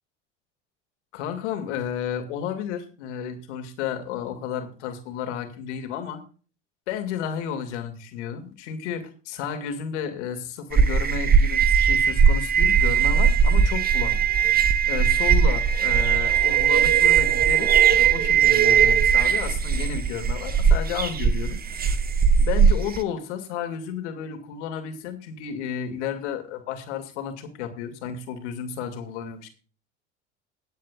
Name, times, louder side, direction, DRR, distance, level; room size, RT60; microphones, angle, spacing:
voice 1, 1.1-6.2 6.9-14.2 14.9-22.0 22.4-29.5, left 8 dB, 75° left, 6 dB, 2.5 m, -32 dB
sound 1, 10.7-23.0, right 7 dB, 25° right, 1.2 m, -19 dB
22.5 x 8.3 x 2.4 m, 0.38 s
hypercardioid pair, 80°, 35 cm